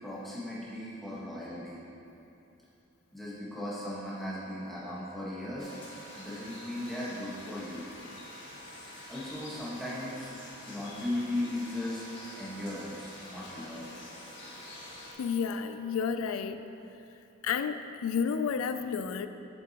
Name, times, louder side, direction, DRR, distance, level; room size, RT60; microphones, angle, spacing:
voice 1, 0.0-1.8 3.1-5.8 6.1-7.9 8.9-10.3 10.7-12.0 12.3-13.9, left 1 dB, ahead, -9 dB, 1.3 m, -37 dB
Wind instrument woodwind instrument, 3.7-16.0, right 3 dB, 30° right, 0.7 m, -53 dB
sound 1, 5.6-15.1, left 1 dB, 60° left, 1.5 m, -48 dB
voice 2, 15.2-16.6 17.4-19.3, left 6 dB, 85° left, 10 dB, 0.3 m, -31 dB
7.8 x 7.0 x 2.9 m, 2.8 s
head